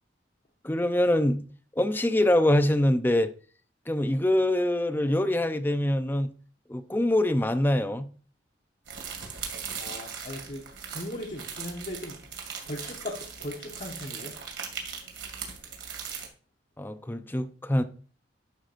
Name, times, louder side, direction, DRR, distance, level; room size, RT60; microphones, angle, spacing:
voice 1, 0.6-1.4 1.8-3.3 3.9-6.3 6.7-8.1 16.8-17.8, left 1 dB, 10° left, 0.6 m, -24 dB
sound 1, 8.9-16.3, right 6 dB, 85° right, 2.3 m, -39 dB
voice 2, 9.8-10.6 10.9-12.2 12.7-14.4, left 1 dB, 45° left, 1.3 m, -38 dB
11.0 x 5.9 x 2.6 m
head